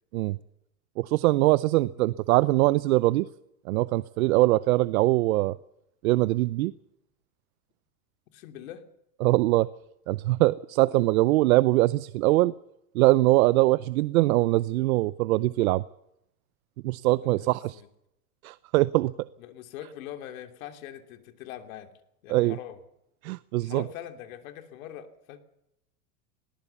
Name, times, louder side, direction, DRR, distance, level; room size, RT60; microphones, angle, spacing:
voice 1, 1.0-3.3 3.7-5.6 6.0-6.7 9.2-9.7 10.1-12.5 12.9-15.8 16.8-17.8 18.4-19.1 22.3-22.6 23.2-23.8, right 18 dB, 70° right, 0.7 m, -22 dB
voice 2, 8.3-8.8 17.2-17.9 19.4-21.9 22.2-22.8 23.6-25.4, left 11 dB, 65° left, 3.0 m, -43 dB
21.0 x 18.5 x 7.1 m
supercardioid pair, 150°, 44 cm